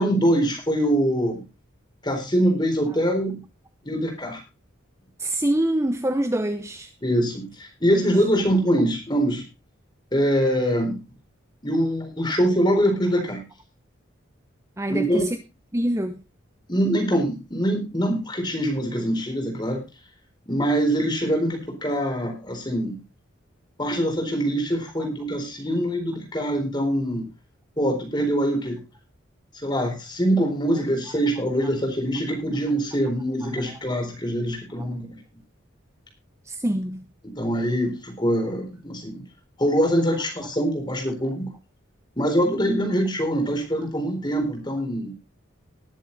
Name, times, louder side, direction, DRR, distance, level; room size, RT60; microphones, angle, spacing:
voice 1, 0.0-1.4 2.0-3.4 3.8-4.4 7.0-9.4 10.1-11.0 11.6-13.4 14.9-15.2 16.7-19.8 20.5-23.0 23.8-27.3 27.8-28.8 29.6-35.2 37.2-39.2 39.6-41.5 42.2-45.1, equal, 20° left, 4.1 m, -24 dB
voice 2, 5.2-6.9 7.9-8.3 14.8-15.4 15.7-16.2 25.0-25.1 33.4-33.8 34.8-34.9 36.5-37.0, right 1 dB, 15° right, 0.7 m, -26 dB
19.5 x 7.5 x 4.0 m
head